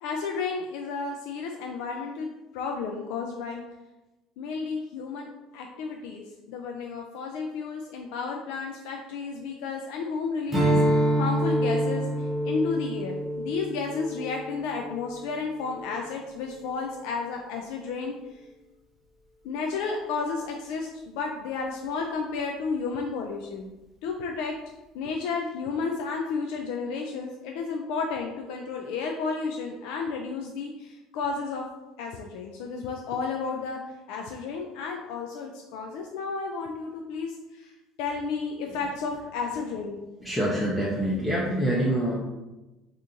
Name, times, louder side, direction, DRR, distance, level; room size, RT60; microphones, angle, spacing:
voice 1, 0.0-3.6 4.4-18.5 19.4-23.7 24.0-24.6 24.9-31.7 32.0-33.8 34.1-37.7 38.0-40.0, left 4 dB, 80° left, 1 dB, 0.3 m, -32 dB
Strum, 10.5-15.2, right 1 dB, 10° right, 1.0 m, -26 dB
voice 2, 40.2-42.1, right 1 dB, 5° left, -6 dB, 0.6 m, -25 dB
2.8 x 2.5 x 3.7 m, 1.1 s
cardioid pair, 125°, 0 cm